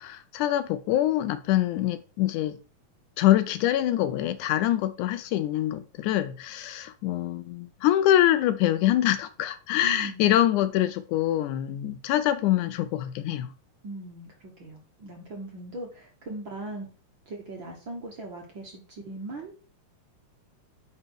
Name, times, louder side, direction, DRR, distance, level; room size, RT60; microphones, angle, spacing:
voice 1, 0.0-2.6 3.2-13.5, left 13 dB, 80° left, 1.9 m, -25 dB
voice 2, 9.8-10.3 13.8-16.9 17.3-19.6, right 2 dB, 50° right, 1.7 m, -39 dB
9.6 x 4.2 x 4.6 m
omnidirectional pair, 3.8 m